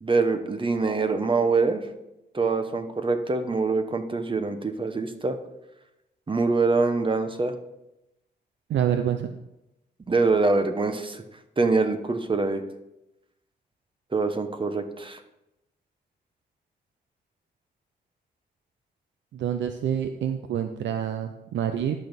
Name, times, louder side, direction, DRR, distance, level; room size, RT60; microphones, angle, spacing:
voice 1, 0.0-1.8 2.3-5.4 6.3-7.5 10.1-11.2 11.6-12.6 14.1-15.2, right 3 dB, 25° right, 8 dB, 1.0 m, -24 dB
voice 2, 8.7-9.3 19.3-22.0, right 9 dB, 80° right, 7 dB, 0.6 m, -27 dB
11.5 x 6.2 x 5.2 m, 0.90 s
cardioid pair, 95°, 19 cm